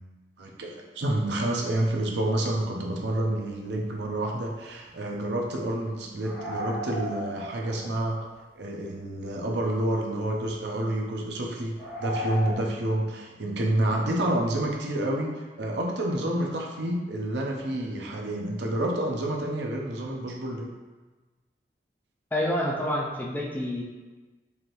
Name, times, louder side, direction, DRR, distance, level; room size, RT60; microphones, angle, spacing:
voice 1, 0.4-8.2 8.6-11.7 12.0-15.3 15.6-20.7, right 1 dB, 75° right, 0 dB, 0.6 m, -29 dB
sound 1, 3.5-3.6 4.0-4.1 4.3-4.4 6.2-8.2 8.8-8.9 10.3-10.5 11.8-12.5, equal, 30° right, 1.3 m, -35 dB
voice 2, 22.3-23.8, left 1 dB, 10° left, -3 dB, 0.4 m, -28 dB
4.8 x 2.6 x 3.0 m, 1.3 s
head